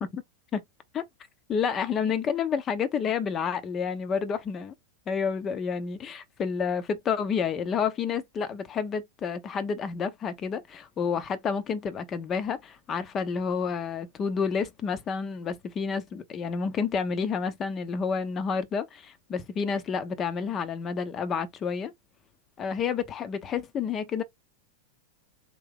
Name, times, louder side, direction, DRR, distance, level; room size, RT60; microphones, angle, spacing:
voice 1, 1.5-4.7 5.1-21.9 22.6-24.2, left 6 dB, 25° left, 0.7 m, -29 dB
3.7 x 2.7 x 3.7 m
figure-of-eight pair, 90°, 0 cm